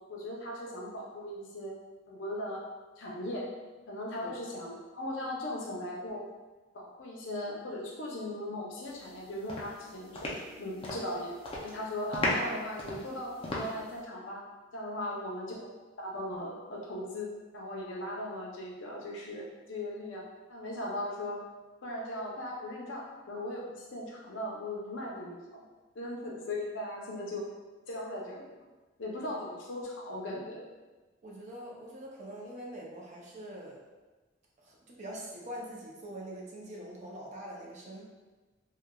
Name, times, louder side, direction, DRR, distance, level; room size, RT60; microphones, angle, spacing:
voice 1, 0.1-1.7 2.1-2.6 3.0-3.5 3.9-6.3 6.7-10.3 10.6-11.3 11.6-14.4 14.7-15.6 16.0-20.2 20.5-21.4 21.8-25.6 25.9-27.4 27.9-28.5 29.0-30.6, left 1 dB, 75° left, -2 dB, 0.6 m, -38 dB
sound 1, 9.0-9.2 9.5-11.1 11.4-11.8 12.1-14.0, left 1 dB, 30° left, 0.4 m, -35 dB
voice 2, 31.2-33.8 34.6-38.0, right 1 dB, 40° right, -3 dB, 0.5 m, -44 dB
3.2 x 2.1 x 2.2 m, 1.2 s
head